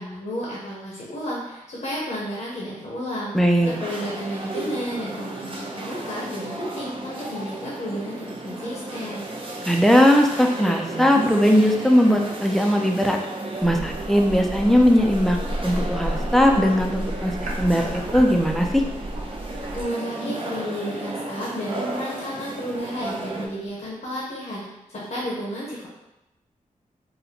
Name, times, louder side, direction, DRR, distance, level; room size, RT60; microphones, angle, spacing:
voice 1, 0.0-9.3 19.8-24.6 24.9-25.9, equal, 65° left, -6 dB, 0.8 m, -32 dB
voice 2, 3.3-3.7 9.7-13.2 13.6-17.3 17.6-18.8, equal, ahead, 2 dB, 0.4 m, -19 dB
sound 1, 3.6-23.5, right 2 dB, 40° right, 0.6 m, -34 dB
sound 2, 13.6-19.8, right 1 dB, 75° right, 0.7 m, -32 dB
3.9 x 2.1 x 2.8 m, 0.95 s
wide cardioid pair, 75°, 14 cm